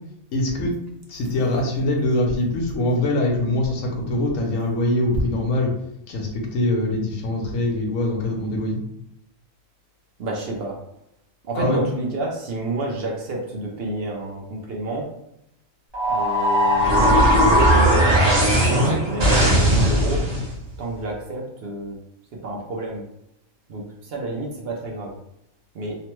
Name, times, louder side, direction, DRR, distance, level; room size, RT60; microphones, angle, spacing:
voice 1, 0.3-0.7 1.1-5.7 6.1-8.8 11.5-11.8, left 1 dB, 70° left, 0 dB, 1.1 m, -23 dB
voice 2, 10.2-10.8 11.4-15.1 16.1-20.2 20.8-22.0 22.4-23.0 23.7-25.1 25.7-26.0, right 1 dB, 60° right, -1 dB, 0.7 m, -30 dB
sound 1, 15.9-20.5, equal, 25° right, 0.8 m, -17 dB
2.9 x 2.1 x 2.9 m, 0.79 s
omnidirectional pair, 1.4 m